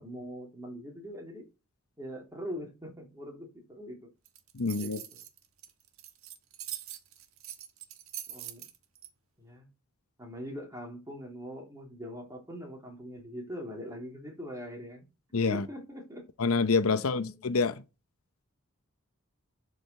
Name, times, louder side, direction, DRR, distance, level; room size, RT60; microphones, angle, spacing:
voice 1, 0.0-1.5 2.0-4.1 4.8-5.2 8.3-8.7 9.4-9.7 10.2-15.1 15.5-16.3 16.9-17.5, equal, 15° right, 3.0 m, -42 dB
sound 1, 4.3-9.1, right 12 dB, 75° right, 1.4 m, -43 dB
voice 2, 4.5-5.0 15.3-15.7 16.4-17.8, left 4 dB, 85° left, 0.8 m, -27 dB
11.5 x 5.1 x 6.6 m
head